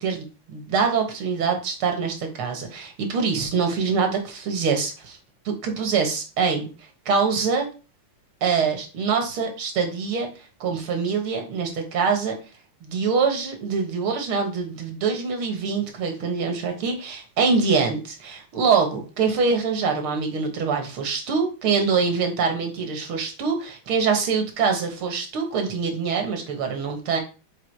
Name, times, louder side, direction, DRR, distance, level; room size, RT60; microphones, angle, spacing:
voice 1, 0.0-5.2 5.5-6.7 7.1-7.7 8.4-10.3 10.6-12.4 12.8-27.2, right 5 dB, 85° right, 4 dB, 2.4 m, -24 dB
7.3 x 3.6 x 4.7 m, 0.32 s
omnidirectional pair, 2.3 m